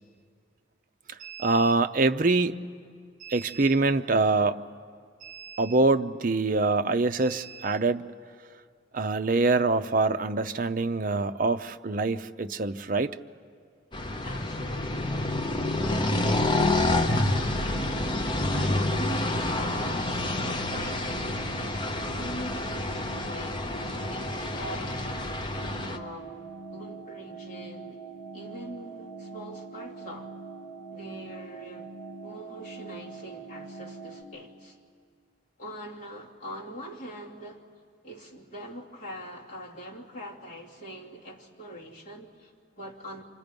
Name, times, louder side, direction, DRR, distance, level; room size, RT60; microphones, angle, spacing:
voice 1, 1.1-2.6 3.2-4.6 5.2-8.0 8.9-13.2, right 3 dB, 45° right, 9 dB, 0.6 m, -25 dB
sound 1, 13.9-26.0, left 2 dB, 25° left, 0.8 m, -28 dB
voice 2, 14.2-15.2 15.7-17.8 18.5-22.7 23.2-25.3 25.9-28.0 28.3-30.3 30.9-31.9 32.2-34.8 35.6-37.6 38.0-43.2, equal, 40° left, -4 dB, 2.6 m, -43 dB
sound 2, 15.8-34.2, right 4 dB, 15° right, 6.5 m, -43 dB
28.5 x 26.0 x 5.3 m, 2.1 s
head